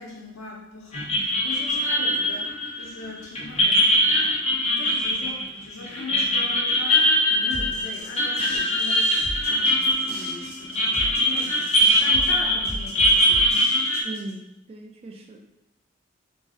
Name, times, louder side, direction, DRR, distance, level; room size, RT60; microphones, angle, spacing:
voice 1, 0.0-13.5, left 3 dB, 85° left, -4 dB, 0.5 m, -40 dB
sound 1, 0.9-14.0, equal, 35° left, 0.6 m, -22 dB
sound 2, 7.5-14.3, equal, 55° right, 0.9 m, -37 dB
voice 2, 14.0-15.4, right 2 dB, 30° right, 3 dB, 0.3 m, -38 dB
2.5 x 2.0 x 3.6 m, 0.89 s
head